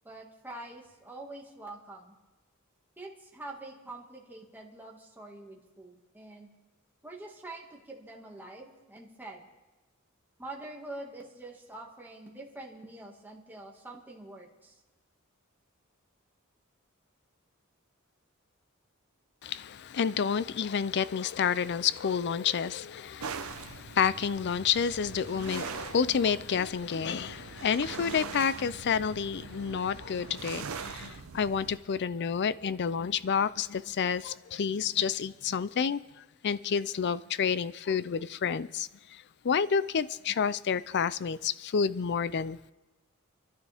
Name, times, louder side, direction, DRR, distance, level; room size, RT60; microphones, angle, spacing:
voice 1, 0.0-2.1 3.0-6.5 7.0-9.4 10.4-14.8, right 2 dB, 10° right, 2.0 m, -45 dB
voice 2, 19.4-36.0 36.4-42.7, left 6 dB, 55° left, 0.5 m, -29 dB
sound 1, 23.2-31.8, right 5 dB, 75° right, 0.7 m, -42 dB
29.0 x 11.5 x 3.5 m
head